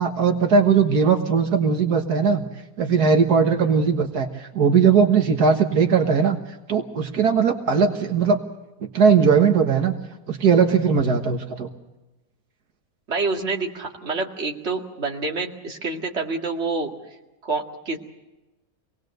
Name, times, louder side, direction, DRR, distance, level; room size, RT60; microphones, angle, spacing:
voice 1, 0.0-2.4 2.8-6.4 6.7-8.4 8.9-9.9 10.3-11.7, right 6 dB, 80° right, 4 dB, 1.9 m, -19 dB
voice 2, 13.1-16.9 17.4-18.0, right 3 dB, 45° right, 1 dB, 2.4 m, -27 dB
26.5 x 19.5 x 6.6 m, 1.1 s
omnidirectional pair, 1.7 m